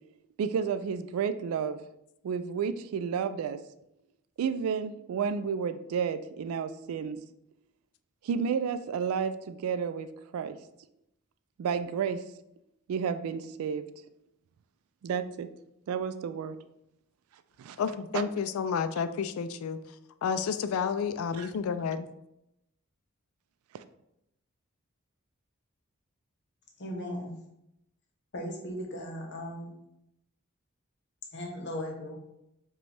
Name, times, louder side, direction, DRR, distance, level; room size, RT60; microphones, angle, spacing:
voice 1, 0.4-1.8 2.2-3.6 4.4-7.2 8.2-10.1 10.3-10.6 11.6-12.2 12.9-13.9 15.0-15.5 15.9-16.6 17.6-17.8 18.1-18.2 21.4-21.5, right 6 dB, 85° right, 14 dB, 0.3 m, -31 dB
voice 2, 17.8-19.8 20.2-22.1, left 6 dB, 85° left, 11 dB, 0.3 m, -30 dB
voice 3, 26.8-27.3 28.3-29.7 31.3-32.2, equal, 55° left, 1 dB, 0.9 m, -37 dB
5.0 x 2.3 x 3.3 m, 0.83 s
head